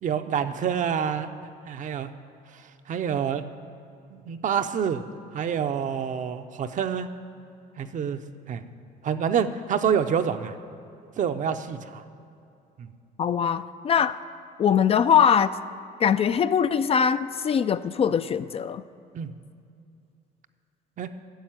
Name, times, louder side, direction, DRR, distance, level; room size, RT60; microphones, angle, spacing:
voice 1, 0.0-1.3 1.7-2.1 2.9-3.4 4.1-5.0 5.3-7.1 7.8-8.2 8.5-8.6 9.0-10.5 11.2-12.0 12.8-12.9 19.1-19.3 21.0-21.1, right 7 dB, 50° right, 9 dB, 0.7 m, -27 dB
voice 2, 13.2-14.2 14.6-15.5 16.0-18.8, left 7 dB, 35° left, 12 dB, 0.4 m, -22 dB
10.5 x 7.2 x 8.9 m, 2.6 s
cardioid pair, 110°, 17 cm